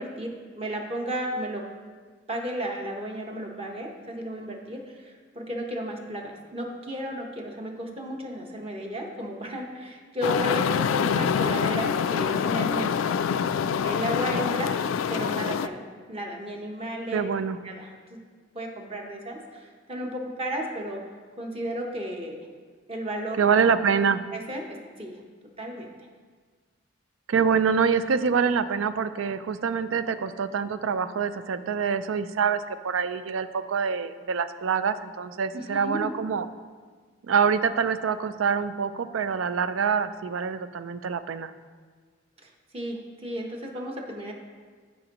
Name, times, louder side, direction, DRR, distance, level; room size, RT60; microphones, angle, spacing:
voice 1, 0.0-1.6 2.3-13.5 13.8-14.8 15.1-17.3 17.6-18.2 18.5-21.0 21.4-22.4 22.9-23.4 24.3-25.2 25.6-26.1 35.5-36.1 42.4-44.3, equal, 30° right, 1 dB, 1.0 m, -34 dB
sound 1, 10.2-15.7, left 7 dB, 85° left, 0.3 m, -25 dB
voice 2, 17.1-17.6 23.4-24.2 27.3-36.5 37.2-41.5, right 6 dB, 85° right, 12 dB, 0.4 m, -25 dB
14.0 x 5.2 x 3.0 m, 1.5 s
head